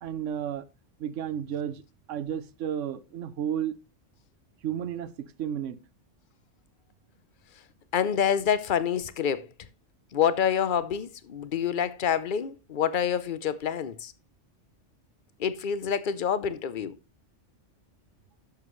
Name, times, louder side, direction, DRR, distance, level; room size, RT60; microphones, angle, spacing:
voice 1, 0.0-0.6 1.0-1.8 2.1-3.8 4.6-5.8, right 9 dB, 75° right, 1.1 m, -32 dB
voice 2, 7.9-9.5 10.1-14.1 15.4-16.9, left 8 dB, 50° left, 0.8 m, -27 dB
11.5 x 7.1 x 3.1 m
omnidirectional pair, 1.3 m